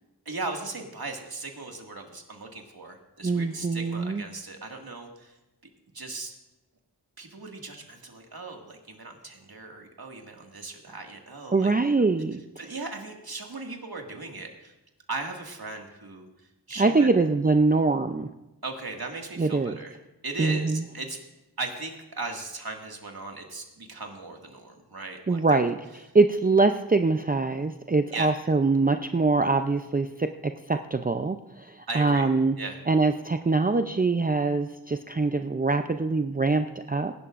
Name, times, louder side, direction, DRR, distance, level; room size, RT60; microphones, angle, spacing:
voice 1, 0.3-5.3 5.9-6.3 7.2-12.0 12.6-14.7 15.1-16.3 16.7-17.1 18.6-20.0 20.2-21.2 21.6-25.6 28.1-28.3 31.9-32.3 32.6-32.8, right 3 dB, 65° right, 2 dB, 2.1 m, -37 dB
voice 2, 3.2-4.2 11.5-12.4 16.8-18.3 19.4-19.8 20.4-20.9 25.3-25.7 26.1-32.5 32.9-37.1, right 3 dB, 20° right, 6 dB, 0.5 m, -23 dB
22.5 x 11.5 x 2.5 m, 0.99 s
wide cardioid pair, 45°, 40 cm